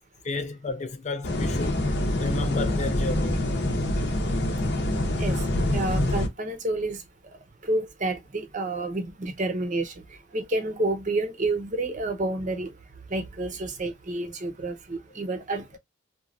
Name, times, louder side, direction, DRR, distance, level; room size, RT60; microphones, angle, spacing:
voice 1, 0.2-1.7 2.2-3.4, left 3 dB, 35° left, 0.4 m, -32 dB
sound 1, 1.2-6.3, left 1 dB, 60° left, 0.7 m, -25 dB
voice 2, 5.7-7.0 7.6-9.9 10.3-12.7 13.1-15.8, right 2 dB, 40° right, 0.7 m, -29 dB
3.0 x 2.3 x 2.4 m
head